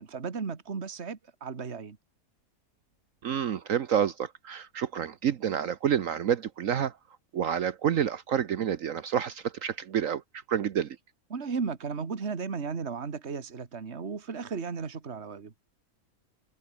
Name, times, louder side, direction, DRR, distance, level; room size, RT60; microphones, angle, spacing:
voice 1, 0.0-2.0 11.3-15.5, right 5 dB, 50° right, 2.1 m, -35 dB
voice 2, 3.2-6.9 7.3-10.2 10.5-11.0, right 9 dB, 65° right, 1.2 m, -28 dB
omnidirectional pair, 1.5 m